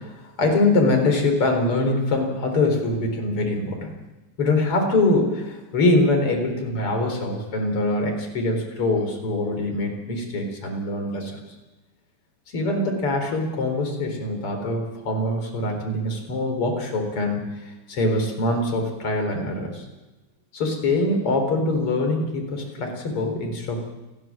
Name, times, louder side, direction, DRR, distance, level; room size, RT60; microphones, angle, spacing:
voice 1, 0.0-3.9 4.4-11.4 12.5-19.8 20.5-23.8, left 2 dB, 35° left, 3 dB, 4.8 m, -23 dB
29.5 x 13.0 x 7.5 m, 1.1 s
omnidirectional pair, 4.3 m